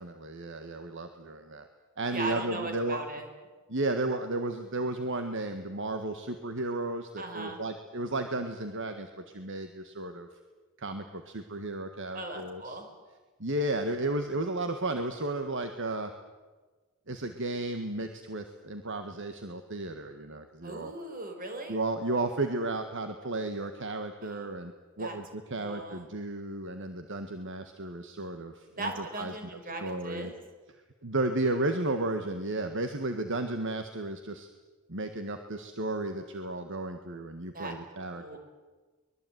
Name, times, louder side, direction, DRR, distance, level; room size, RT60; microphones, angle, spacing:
voice 1, 0.0-1.7 2.0-3.0 3.7-10.3 10.8-12.8 13.4-16.1 17.1-20.9 21.7-28.9 29.2-29.3 29.8-30.3 31.0-34.5 34.9-38.4, right 2 dB, 60° right, 7 dB, 1.7 m, -33 dB
voice 2, 2.1-3.3 7.2-7.6 12.1-12.9 20.6-21.8 24.2-24.5 25.0-25.2 25.5-26.1 28.8-30.4 37.5-37.7 38.1-38.4, right 2 dB, 45° right, 5 dB, 5.3 m, -38 dB
24.0 x 21.0 x 9.5 m, 1.3 s
head